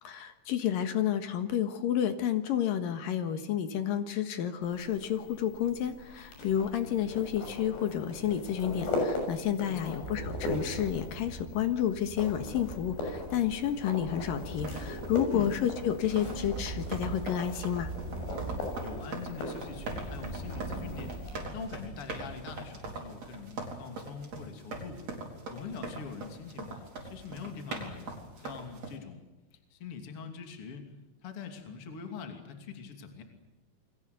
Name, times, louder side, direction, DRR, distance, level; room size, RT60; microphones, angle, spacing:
voice 1, 0.0-17.9, left 10 dB, 65° left, 9 dB, 2.9 m, -30 dB
sound 1, 4.6-21.4, left 2 dB, 80° left, 8.7 m, -39 dB
voice 2, 9.7-10.0 15.3-15.5 18.8-21.2 21.5-25.0 25.5-30.9 31.2-33.2, left 5 dB, 35° left, 5 dB, 3.3 m, -43 dB
sound 2, 10.0-22.4, right 2 dB, 25° right, 7.5 m, -42 dB
sound 3, 14.4-29.0, right 3 dB, 40° right, 5.0 m, -42 dB
29.0 x 22.5 x 8.2 m, 1.1 s
omnidirectional pair, 4.8 m